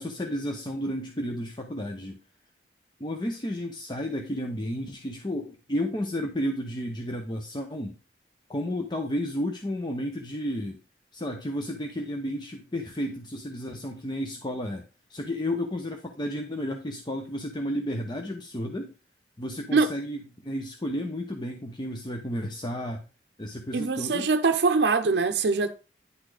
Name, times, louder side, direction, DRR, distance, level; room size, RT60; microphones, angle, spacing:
voice 1, 0.0-2.2 3.0-8.0 8.5-10.8 11.1-18.9 19.4-23.0 23.4-24.3, equal, 25° left, 0.7 m, -32 dB
voice 2, 23.7-25.7, right 4 dB, 75° right, 0.6 m, -23 dB
9.9 x 4.1 x 4.8 m
head